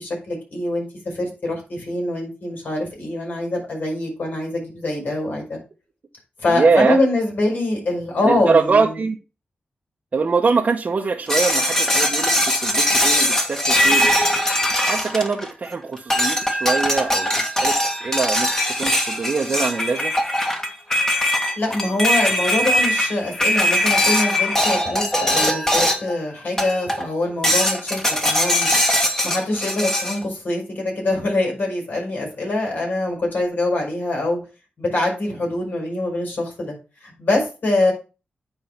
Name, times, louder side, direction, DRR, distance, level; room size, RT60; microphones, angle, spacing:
voice 1, 0.0-5.6 6.4-9.0 21.6-29.0 29.2-34.4 34.8-36.7 37.0-37.9, left 2 dB, 65° left, 0 dB, 5.9 m, -24 dB
voice 2, 6.5-7.0 8.2-9.2 10.1-14.1 14.7-18.5 18.8-20.1, right 4 dB, 50° right, 0 dB, 1.0 m, -22 dB
sound 1, 11.3-15.7 16.1-26.2 26.6-27.1 27.4-30.2, equal, 15° left, 1.7 m, -20 dB
9.0 x 4.6 x 5.7 m, 0.32 s
wide cardioid pair, 95°, 3 cm